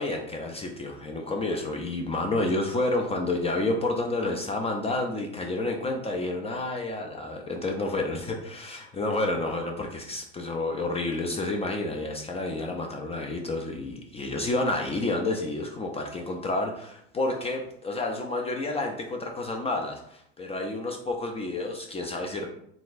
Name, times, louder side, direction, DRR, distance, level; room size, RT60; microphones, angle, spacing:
voice 1, 0.0-22.5, left 2 dB, 20° left, 1 dB, 0.4 m, -30 dB
3.9 x 2.3 x 2.5 m, 0.70 s
hypercardioid pair, 90°, 34 cm